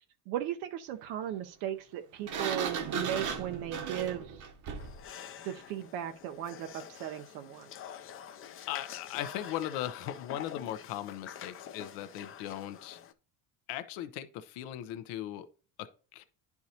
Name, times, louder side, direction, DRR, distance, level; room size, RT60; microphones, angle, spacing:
voice 1, 0.0-4.4 5.4-7.7, right 11 dB, 85° right, 0.7 m, -37 dB
Sliding door, 2.3-5.0, right 6 dB, 45° right, 0.9 m, -35 dB
sound 1, 4.8-13.1, left 9 dB, 35° left, 0.5 m, -47 dB
voice 2, 7.8-8.1 8.7-13.0 13.7-15.5 16.1-16.2, left 12 dB, 85° left, 0.8 m, -38 dB
10.5 x 4.7 x 2.8 m
cardioid pair, 135°, 40 cm